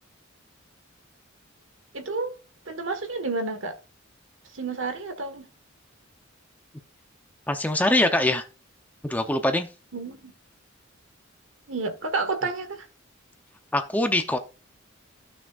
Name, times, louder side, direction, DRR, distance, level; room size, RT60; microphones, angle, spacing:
voice 1, 1.9-2.4 2.7-3.7 4.5-5.5 9.9-10.3 11.7-12.9, right 3 dB, 65° right, 1.4 m, -30 dB
voice 2, 7.5-8.4 9.0-9.7 13.7-14.4, left 1 dB, 10° left, 0.6 m, -23 dB
15.0 x 6.1 x 2.4 m
head